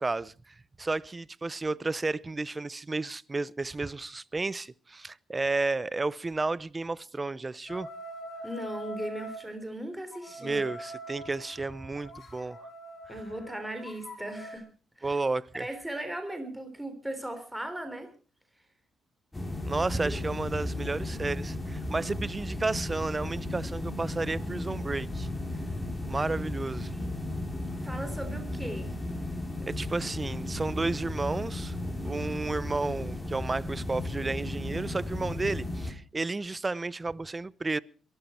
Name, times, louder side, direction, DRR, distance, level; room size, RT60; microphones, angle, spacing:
voice 1, 0.0-7.9 10.4-12.7 15.0-15.7 19.6-25.3 26.1-26.9 29.6-31.7 32.0-37.8, right 3 dB, 25° right, 0.7 m, -32 dB
sound 1, 7.7-9.4 10.1-14.6, equal, 45° left, 7.3 m, -43 dB
voice 2, 8.4-10.6 13.1-14.7 15.0-15.2 15.5-18.1 20.0-20.2 26.2-27.2 27.8-29.0, right 1 dB, 5° right, 3.5 m, -38 dB
sound 2, 19.3-35.9, left 1 dB, 15° left, 3.4 m, -35 dB
22.5 x 13.5 x 4.4 m
cardioid pair, 90°, 0 cm